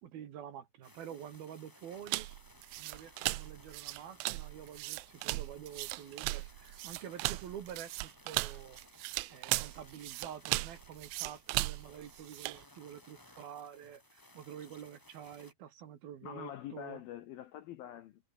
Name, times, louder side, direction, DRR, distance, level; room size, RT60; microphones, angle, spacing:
voice 1, 0.0-2.3 2.8-8.8 9.3-17.0, right 9 dB, 60° right, 3.4 m, -48 dB
sound 1, 0.8-15.5, left 1 dB, 10° left, 0.9 m, -60 dB
sound 2, 2.1-12.6, right 22 dB, 90° right, 3.1 m, -37 dB
voice 2, 16.2-18.3, left 12 dB, 70° left, 2.3 m, -45 dB
omnidirectional pair, 5.4 m